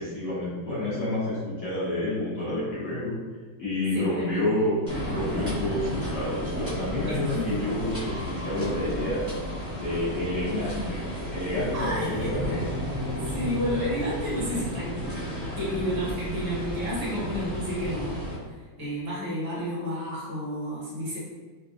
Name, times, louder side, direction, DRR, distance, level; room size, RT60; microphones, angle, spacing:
voice 1, 0.0-3.1 3.6-4.8 5.0-9.2 9.8-11.0 11.3-12.6, left 1 dB, 55° left, -10 dB, 1.1 m, -29 dB
voice 2, 3.9-4.5 5.3-5.5 7.1-7.7 11.7-12.5 13.1-15.2 15.6-18.2 18.5-21.2, equal, 30° right, -8 dB, 0.7 m, -31 dB
sound 1, 4.9-18.4, equal, 10° left, 0.6 m, -33 dB
3.4 x 2.2 x 2.5 m, 1.4 s
omnidirectional pair, 2.1 m